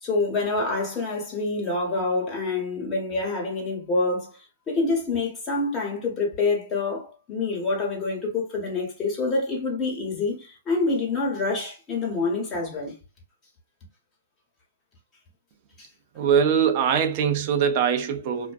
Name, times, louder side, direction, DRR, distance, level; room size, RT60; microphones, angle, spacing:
voice 1, 0.0-12.9 15.8-15.9, left 3 dB, 20° left, 1.2 m, -27 dB
voice 2, 16.2-18.5, right 7 dB, 40° right, 0.6 m, -22 dB
2.5 x 2.1 x 2.5 m
hypercardioid pair, 135°, 0 cm